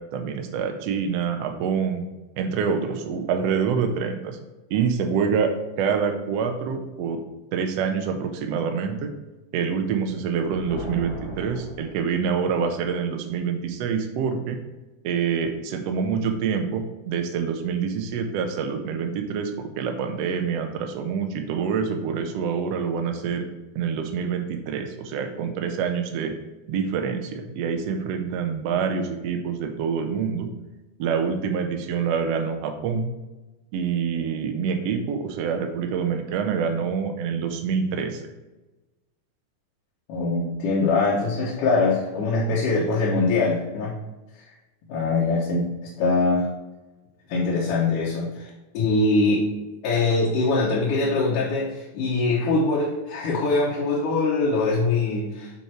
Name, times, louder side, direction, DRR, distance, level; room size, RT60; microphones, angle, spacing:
voice 1, 0.1-2.0 2.4-4.4 4.7-5.5 5.8-7.2 7.5-9.1 9.5-14.6 15.0-23.4 23.7-26.3 26.7-30.5 31.0-33.1 33.7-38.2, right 6 dB, 90° right, 5 dB, 1.4 m, -26 dB
Thunder, 10.2-12.7, left 1 dB, 40° left, 2.0 m, -38 dB
voice 2, 40.1-43.9 44.9-45.7 46.0-46.5 47.3-48.5 48.7-49.4 49.8-55.5, left 3 dB, 70° left, -6 dB, 2.7 m, -23 dB
6.4 x 5.6 x 4.4 m, 1.1 s
omnidirectional pair, 4.1 m